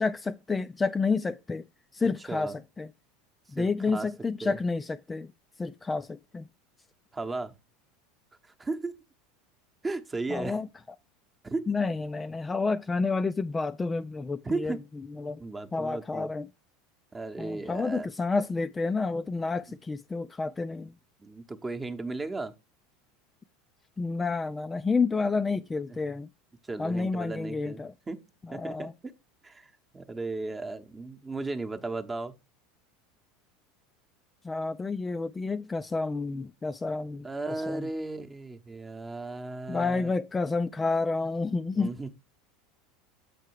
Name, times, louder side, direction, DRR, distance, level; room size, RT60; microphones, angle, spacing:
voice 1, 0.0-1.7 1.9-2.9 3.5-5.3 5.6-6.4 10.3-10.7 11.7-14.8 15.2-15.4 15.7-16.5 17.4-20.9 24.0-26.3 26.8-27.9 28.4-28.9 34.4-37.9 39.7-41.9, left 4 dB, 15° left, 0.3 m, -30 dB
voice 2, 3.6-4.1 4.4-4.6 7.1-7.5 8.4-9.0 9.8-10.6 11.4-11.7 14.4-14.8 15.4-16.3 17.1-18.1 21.2-22.5 26.7-28.2 28.5-28.9 29.4-32.3 37.2-40.1 41.7-42.1, right 3 dB, 15° right, 0.9 m, -35 dB
7.6 x 4.6 x 4.6 m
hypercardioid pair, 95°, 0 cm